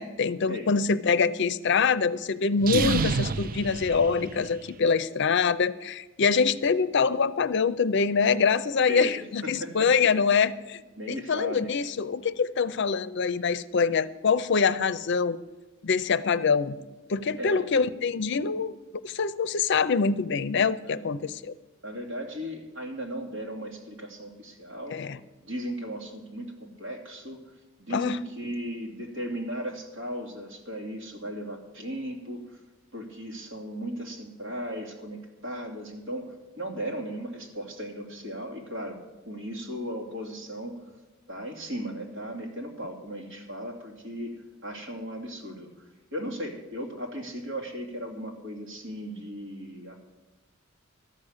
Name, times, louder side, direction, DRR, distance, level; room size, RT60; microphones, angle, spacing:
voice 1, 0.0-10.8 11.1-15.4 15.8-16.8 17.1-18.8 19.0-21.5 24.9-25.2 27.9-28.2, left 5 dB, 60° left, 15 dB, 0.5 m, -25 dB
sound 1, 2.6-4.7, right 5 dB, 45° right, 0.4 m, -29 dB
voice 2, 8.9-9.9 11.0-11.9 17.4-17.7 20.8-21.0 21.8-25.0 25.4-27.5 27.8-32.6 32.9-39.0 39.2-40.9 41.3-50.0, equal, 75° right, 0 dB, 2.8 m, -36 dB
13.0 x 6.5 x 9.8 m, 1.2 s
head